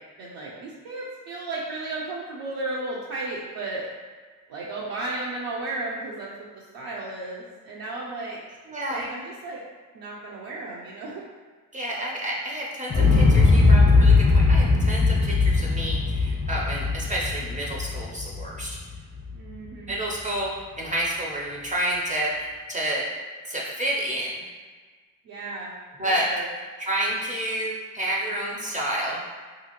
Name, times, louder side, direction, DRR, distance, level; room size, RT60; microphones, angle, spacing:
voice 1, 0.2-3.9 4.5-6.3 6.5-8.4 8.9-9.6 9.9-11.2 19.3-19.9 25.2-25.8 26.0-26.5, right 2 dB, 75° right, -6 dB, 0.6 m, -34 dB
voice 2, 8.7-9.0 11.7-18.8 19.9-23.0 23.4-24.3 26.0-26.3 26.8-29.2, right 1 dB, 20° right, -3 dB, 0.4 m, -29 dB
Explosion, 12.9-18.9 19.3-19.4, left 3 dB, 30° left, 0.5 m, -19 dB
2.7 x 2.6 x 2.8 m, 1.5 s
cardioid pair, 120°, 35 cm